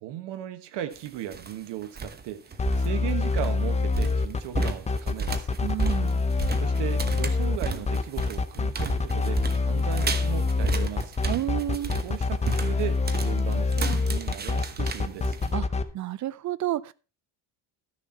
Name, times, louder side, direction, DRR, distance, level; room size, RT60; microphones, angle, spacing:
voice 1, 0.0-2.5 2.8-5.6 6.6-11.1 12.0-15.4, right 12 dB, 80° right, 1.5 m, -36 dB
sound 1, 0.9-1.5 1.8-2.2 2.5-15.5, right 5 dB, 25° right, 1.0 m, -34 dB
sound 2, 2.6-15.8, left 3 dB, 15° left, 0.7 m, -26 dB
voice 2, 5.6-6.2 11.3-11.9 15.5-15.7 15.9-16.9, right 13 dB, 45° right, 0.5 m, -30 dB
13.0 x 6.6 x 4.4 m
cardioid pair, 150°, 41 cm